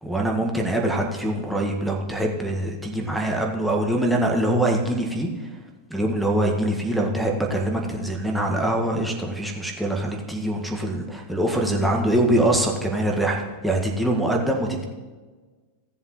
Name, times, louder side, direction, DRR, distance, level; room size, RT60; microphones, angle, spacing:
voice 1, 0.0-5.5 5.9-14.8, right 1 dB, 5° right, -1 dB, 1.6 m, -24 dB
16.5 x 7.4 x 3.1 m, 1.3 s
figure-of-eight pair, 90°, 0 cm